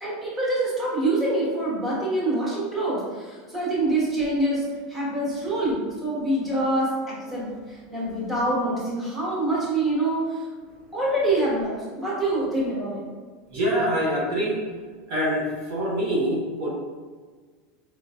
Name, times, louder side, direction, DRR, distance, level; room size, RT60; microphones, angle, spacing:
voice 1, 0.0-10.5 10.9-13.0, right 1 dB, 20° right, -7 dB, 1.5 m, -25 dB
voice 2, 13.5-14.6 15.1-16.7, equal, 70° right, -5 dB, 1.3 m, -25 dB
4.7 x 3.7 x 2.5 m, 1.5 s
supercardioid pair, 140°, 0 cm